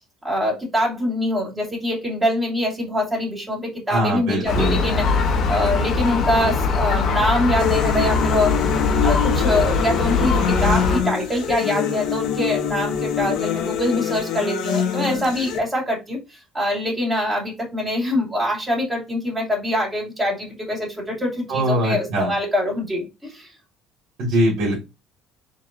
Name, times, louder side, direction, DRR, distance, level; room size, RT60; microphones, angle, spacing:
voice 1, 0.2-8.5 9.0-23.5, left 1 dB, 15° right, -2 dB, 2.5 m, -24 dB
voice 2, 3.9-4.8 21.5-22.3 24.2-24.8, right 1 dB, 65° right, -3 dB, 1.9 m, -21 dB
Gull seagull, 4.5-11.0, left 4 dB, 55° left, 0.9 m, -21 dB
sound 1, 7.6-15.6, left 8 dB, 75° left, 1.0 m, -25 dB
4.4 x 3.2 x 2.6 m, 0.25 s
cardioid pair, 120°, 0 cm